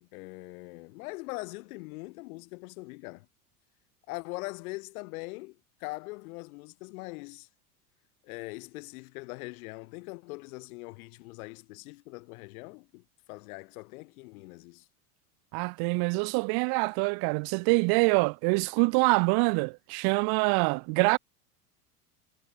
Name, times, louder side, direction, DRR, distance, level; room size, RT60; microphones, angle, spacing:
voice 1, 0.0-3.3 4.1-7.5 8.2-14.9, left 25 dB, 65° left, 4.5 m, -42 dB
voice 2, 15.5-21.2, right 33 dB, 50° right, 0.9 m, -25 dB
hypercardioid pair, 90°, 46 cm